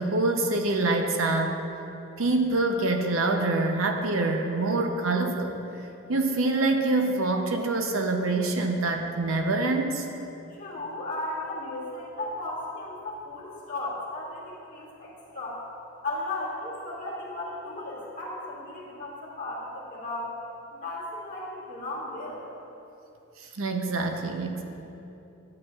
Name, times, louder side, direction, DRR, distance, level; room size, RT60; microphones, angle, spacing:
voice 1, 0.0-1.6 2.2-5.6 6.1-10.1 23.5-24.6, right 2 dB, 80° right, 3 dB, 0.7 m, -25 dB
voice 2, 10.5-15.6 16.0-20.4 20.7-22.4, left 2 dB, 40° left, -6 dB, 1.8 m, -35 dB
11.5 x 7.9 x 2.4 m, 2.9 s
head